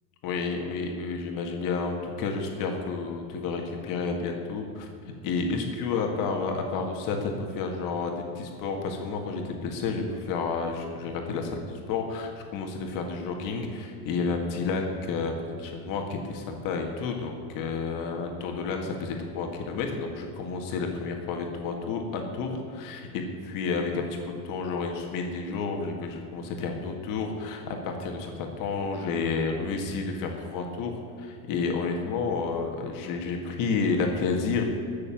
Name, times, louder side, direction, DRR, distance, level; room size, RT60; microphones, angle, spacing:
voice 1, 0.2-4.9 5.2-34.6, left 4 dB, 50° left, 2 dB, 1.8 m, -30 dB
15.0 x 6.7 x 8.9 m, 2.2 s
supercardioid pair, 150°, 43 cm